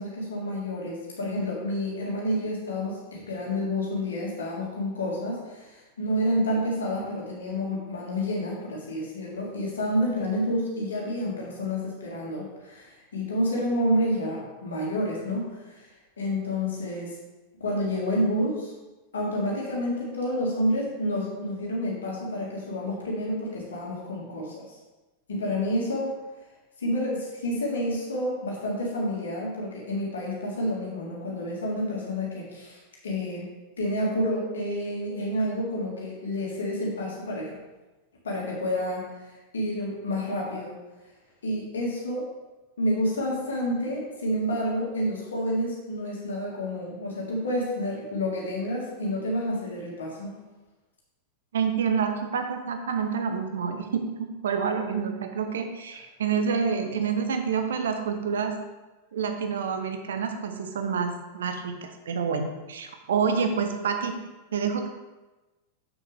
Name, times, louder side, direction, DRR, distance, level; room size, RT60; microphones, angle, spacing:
voice 1, 0.0-15.9 16.2-17.2 17.6-18.7 19.1-24.6 25.3-26.1 26.8-33.5 33.8-37.5 38.2-39.0 39.5-40.8 41.4-42.3 42.8-50.3, equal, 65° left, -3 dB, 2.2 m, -29 dB
voice 2, 51.5-58.5 59.1-64.2 64.5-64.9, right 6 dB, 65° right, 6 dB, 0.8 m, -28 dB
7.3 x 6.4 x 3.5 m, 1.1 s
figure-of-eight pair, 90°, 0 cm